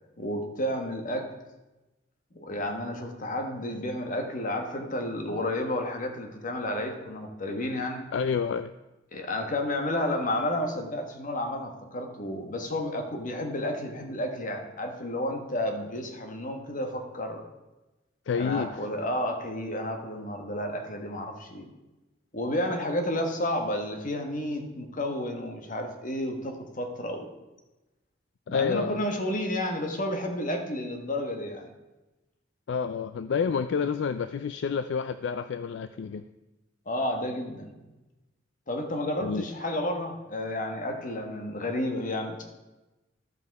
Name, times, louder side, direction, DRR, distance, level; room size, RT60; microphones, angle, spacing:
voice 1, 0.2-1.3 2.3-8.1 9.1-17.4 18.3-21.7 22.3-27.3 28.5-31.7 36.8-37.8 38.7-42.5, left 1 dB, 45° left, 4 dB, 1.4 m, -31 dB
voice 2, 8.1-8.7 18.3-18.7 28.5-29.0 32.7-36.2 39.2-39.5, left 6 dB, 70° left, 11 dB, 0.3 m, -29 dB
13.5 x 5.4 x 4.7 m, 1.1 s
head